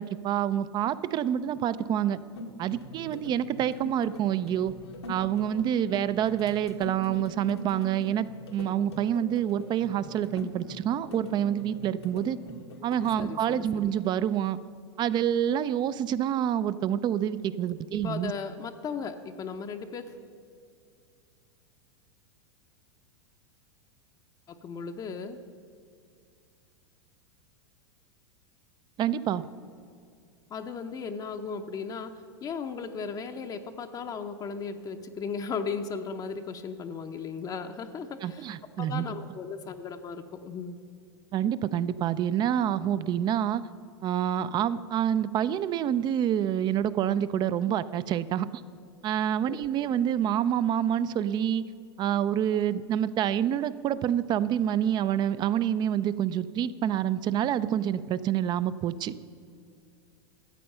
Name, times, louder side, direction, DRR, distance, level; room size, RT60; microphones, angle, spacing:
voice 1, 0.0-2.2 2.6-4.7 5.1-12.4 12.8-14.6 15.0-18.3 29.0-29.4 38.2-39.1 41.3-43.6 44.0-48.5 49.0-51.6 52.0-59.1, right 10 dB, 35° right, 15 dB, 0.5 m, -27 dB
sound 1, 2.3-13.2, left 1 dB, 90° left, 1.6 m, -43 dB
voice 2, 13.2-13.9 18.0-20.2 24.5-25.4 30.5-32.1 32.4-38.5 38.8-40.8 49.5-49.6, left 5 dB, 30° left, 6 dB, 0.7 m, -36 dB
13.5 x 8.4 x 5.5 m, 2.3 s
hypercardioid pair, 105°, 13 cm